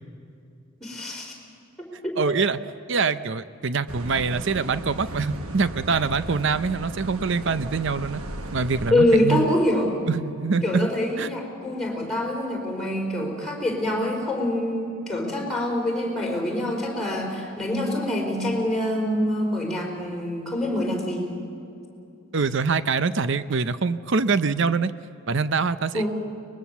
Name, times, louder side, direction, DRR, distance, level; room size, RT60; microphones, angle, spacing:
voice 1, 0.8-1.3 2.0-2.4 8.9-10.0 10.6-21.3 25.9-26.1, left 1 dB, ahead, -1 dB, 4.5 m, -25 dB
voice 2, 2.2-2.6 2.9-8.2 8.5-9.5 10.1-10.9 11.2-11.3 22.3-24.9 25.3-26.1, right 4 dB, 55° right, 13 dB, 0.6 m, -24 dB
sound 1, 3.9-8.9, right 1 dB, 85° right, 1.3 m, -36 dB
23.5 x 20.5 x 7.1 m, 2.6 s
head